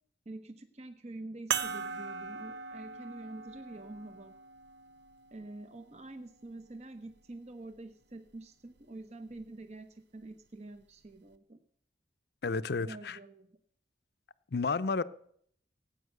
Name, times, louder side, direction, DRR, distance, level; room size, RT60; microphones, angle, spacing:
voice 1, 0.3-4.3 5.3-11.6 12.8-13.6, right 2 dB, 40° right, 0.8 m, -47 dB
sound 1, 1.5-6.3 7.1-7.2 9.3-9.4, right 6 dB, 80° right, 0.8 m, -40 dB
voice 2, 12.4-13.2 14.5-15.0, left 4 dB, 60° left, 0.6 m, -31 dB
17.0 x 8.8 x 6.6 m
head